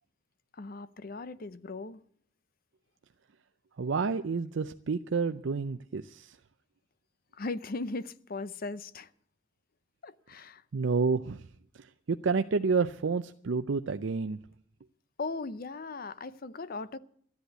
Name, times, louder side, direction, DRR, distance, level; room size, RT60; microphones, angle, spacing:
voice 1, 0.5-2.0 7.3-9.1 10.0-10.6 15.2-17.0, left 3 dB, 45° left, 0.6 m, -38 dB
voice 2, 3.8-6.3 10.7-11.4 12.1-14.4, right 4 dB, 65° right, 0.5 m, -29 dB
13.0 x 10.5 x 8.1 m
head